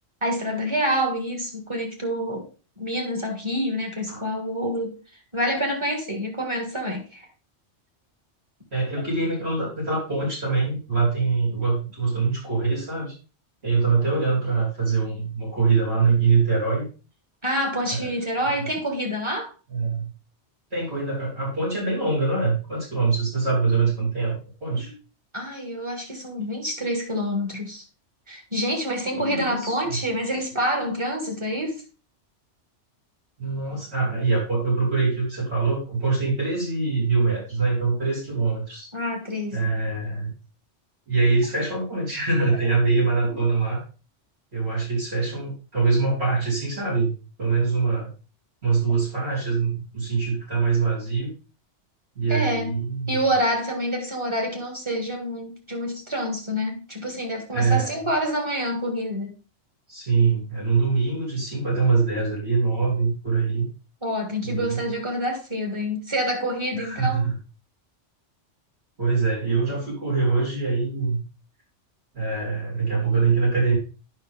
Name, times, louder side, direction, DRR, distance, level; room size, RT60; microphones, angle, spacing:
voice 1, 0.2-2.5 2.8-5.0 5.3-7.3 17.4-19.5 24.7-24.9 25.3-27.8 28.3-31.8 38.9-39.6 52.3-52.8 53.1-59.3 64.0-67.2, equal, 25° right, 1.9 m, -27 dB
voice 2, 8.7-13.1 13.6-16.9 17.9-18.1 18.6-18.7 19.7-20.1 20.7-24.9 29.1-30.0 33.4-38.9 39.5-40.3 41.1-43.8 44.5-47.1 47.4-48.1 48.6-51.3 52.2-53.2 57.5-57.9 59.9-63.7 64.4-64.9 66.8-67.4 69.0-71.2 72.1-73.8, right 4 dB, 60° right, 3.8 m, -24 dB
9.6 x 5.7 x 3.5 m
omnidirectional pair, 1.2 m